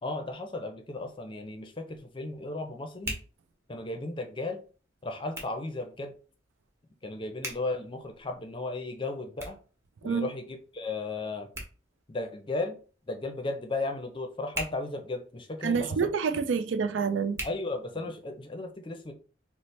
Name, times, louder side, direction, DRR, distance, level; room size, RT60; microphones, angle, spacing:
voice 1, 0.0-3.2 3.7-4.6 5.0-6.1 7.0-9.6 10.0-11.5 12.1-12.8 13.1-16.1 17.4-19.1, left 2 dB, 25° left, 0.5 m, -35 dB
Hands, 0.8-18.4, right 1 dB, 15° right, 0.8 m, -46 dB
voice 2, 15.6-17.4, right 5 dB, 90° right, 0.4 m, -27 dB
3.2 x 2.0 x 4.1 m
head